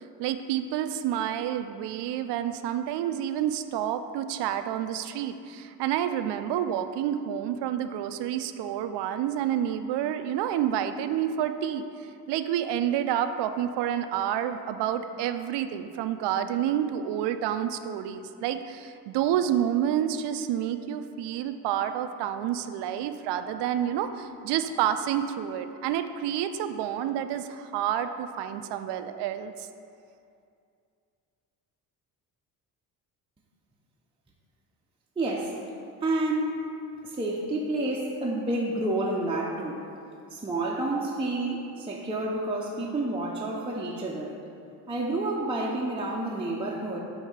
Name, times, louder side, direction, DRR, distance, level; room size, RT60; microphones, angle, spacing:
voice 1, 0.2-11.8 12.3-29.7, right 10 dB, 70° right, 9 dB, 0.5 m, -29 dB
voice 2, 35.2-35.6 36.0-36.6 37.0-39.8 40.3-44.4 44.9-47.0, right 2 dB, 15° right, -4 dB, 0.6 m, -29 dB
7.9 x 2.8 x 4.8 m, 2.4 s
supercardioid pair, 80°, 43 cm